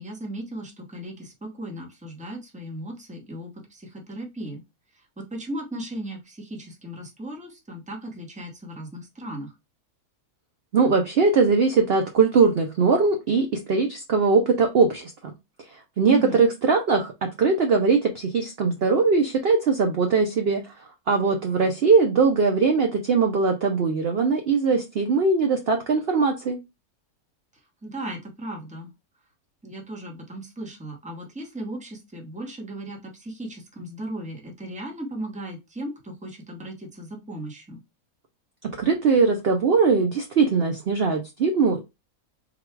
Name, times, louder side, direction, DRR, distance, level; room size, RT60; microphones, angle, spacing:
voice 1, 0.0-4.6 5.2-9.5 16.1-16.4 27.8-28.9 29.6-37.8, right 1 dB, 5° right, 0 dB, 0.8 m, -36 dB
voice 2, 10.7-15.1 16.0-17.1 17.4-20.6 21.1-26.6 38.8-41.8, right 4 dB, 60° right, 4 dB, 0.6 m, -21 dB
3.8 x 2.3 x 4.5 m, 0.24 s
omnidirectional pair, 1.6 m